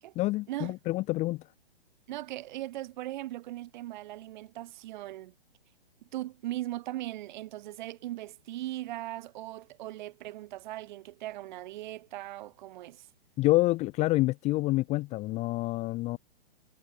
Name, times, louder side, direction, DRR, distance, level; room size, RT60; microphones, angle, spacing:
voice 1, 0.2-1.4 13.4-16.2, left 19 dB, 20° left, 1.0 m, -27 dB
voice 2, 2.1-5.3 6.1-13.1, right 15 dB, 45° right, 5.2 m, -39 dB
hypercardioid pair, 135°, 32 cm